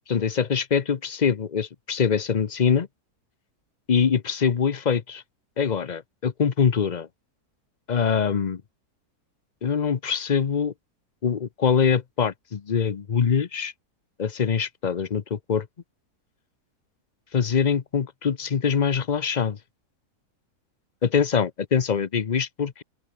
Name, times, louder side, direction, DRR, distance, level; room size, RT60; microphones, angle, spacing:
voice 1, 0.1-2.9 3.9-5.2 5.6-7.1 7.9-8.6 9.6-10.7 11.2-13.7 14.2-15.7 17.3-19.6 21.0-22.8, left 6 dB, 40° left, 0.6 m, -23 dB
open air
omnidirectional pair, 1.7 m